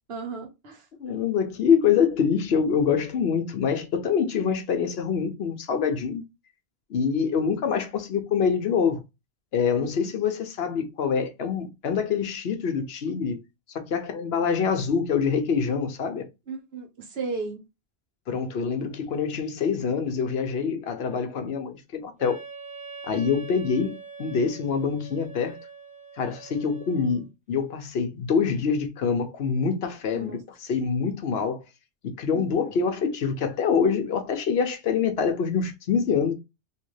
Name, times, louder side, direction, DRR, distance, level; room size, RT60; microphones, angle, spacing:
voice 1, 0.1-0.8 9.8-10.1 16.5-17.6 30.1-30.4 32.3-32.7, right 4 dB, 65° right, 1.2 m, -35 dB
voice 2, 1.0-6.2 6.9-9.0 9.5-13.4 13.7-16.3 18.3-22.4 23.0-25.6 26.2-31.6 32.2-36.3, left 6 dB, 70° left, 0.9 m, -25 dB
Wind instrument woodwind instrument, 22.2-27.3, right 5 dB, 10° right, 0.6 m, -43 dB
3.2 x 2.8 x 3.1 m
omnidirectional pair, 1.1 m